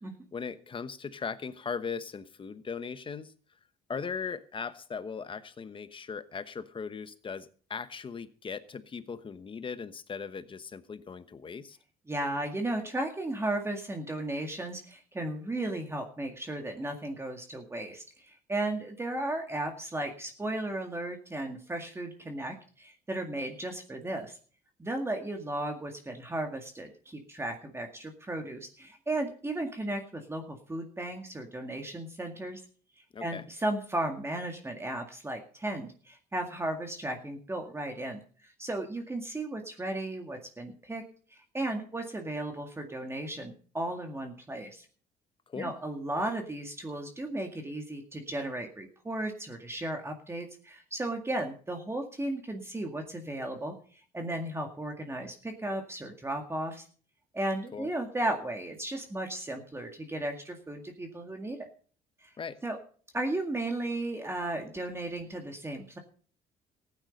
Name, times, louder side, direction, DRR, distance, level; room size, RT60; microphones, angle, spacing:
voice 1, 0.3-3.3 3.9-11.8 33.1-33.4 45.5-45.7 57.7-57.9 62.4-62.6, left 6 dB, 30° left, 12 dB, 1.1 m, -38 dB
voice 2, 12.1-24.4 24.8-32.6 33.2-41.0 41.3-44.9 45.6-56.8 57.3-61.7 62.2-62.3 62.6-62.8 63.1-66.0, right 1 dB, 15° right, 4 dB, 2.0 m, -35 dB
15.0 x 9.3 x 5.4 m, 0.43 s
cardioid pair, 110°, 17 cm